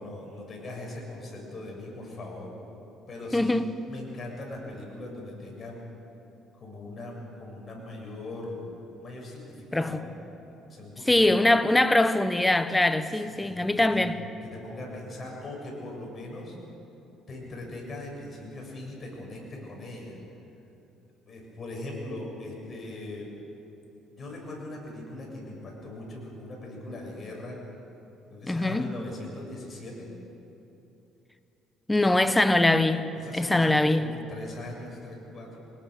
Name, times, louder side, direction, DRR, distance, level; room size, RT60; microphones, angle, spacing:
voice 1, 0.0-2.5 3.1-3.5 3.9-5.8 6.5-8.7 9.0-10.2 10.7-11.4 13.1-14.0 14.4-16.6 17.3-20.2 21.2-23.3 24.1-27.6 28.3-30.1 31.9-32.4 33.2-35.6, left 2 dB, 35° left, 7.5 m, -40 dB
voice 2, 3.3-3.7 9.7-9.9 11.1-14.2 28.5-28.9 31.9-34.1, left 2 dB, 10° left, 1.1 m, -22 dB
25.5 x 20.5 x 6.7 m
cardioid pair, 100°, 0 cm